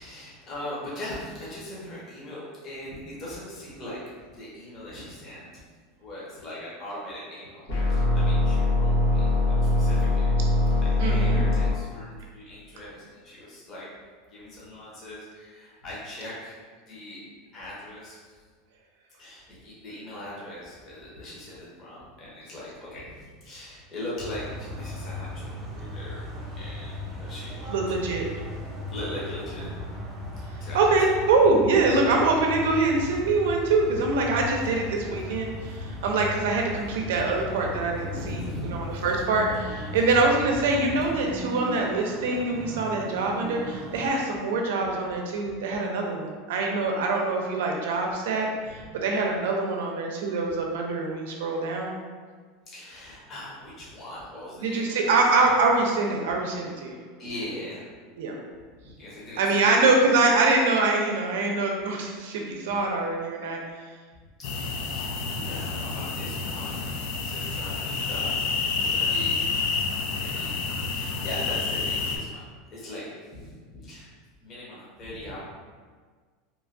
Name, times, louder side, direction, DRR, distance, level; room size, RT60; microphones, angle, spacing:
voice 1, 0.0-5.4 6.0-7.6 7.9-10.4 10.8-13.9 14.2-17.2 17.5-18.2 19.1-28.1 28.3-28.4 28.9-29.8 30.6-31.2 38.1-39.1 45.4-45.6 48.6-48.8 52.7-55.2 56.2-56.3 57.2-57.9 59.0-59.9 64.5-69.4 70.2-72.4 72.7-73.0 73.3-74.1 74.4-75.4, left 1 dB, 30° left, -7 dB, 0.8 m, -40 dB
sound 1, 7.7-11.7, left 2 dB, 90° left, 0.9 m, -22 dB
voice 2, 11.0-11.4 27.7-28.2 30.7-51.9 54.6-57.0 58.2-58.4 59.4-63.6, right 3 dB, 80° right, 1 dB, 0.5 m, -24 dB
sound 2, 24.2-44.1, left 1 dB, 15° right, 0.6 m, -37 dB
sound 3, 64.4-72.2, left 4 dB, 60° left, 0.3 m, -29 dB
3.1 x 2.2 x 2.5 m, 1.5 s
supercardioid pair, 160°, 0 cm